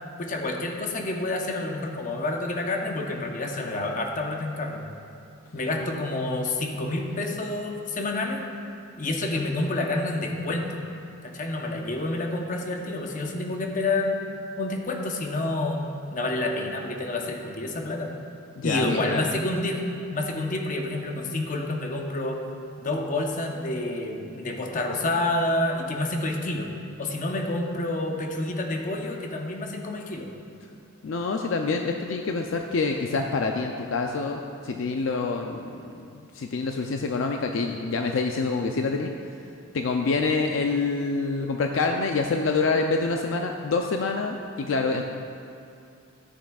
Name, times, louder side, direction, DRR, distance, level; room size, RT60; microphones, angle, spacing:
voice 1, 0.2-4.9 5.5-8.4 9.0-10.8 11.2-14.2 14.6-15.8 16.1-18.1 18.6-19.8 20.1-22.4 22.8-26.7 27.0-30.3, left 2 dB, 40° left, 1 dB, 0.8 m, -28 dB
voice 2, 18.6-19.3 31.0-39.1 39.7-45.0, left 4 dB, 70° left, 3 dB, 0.4 m, -26 dB
14.0 x 7.2 x 2.3 m, 2.5 s
head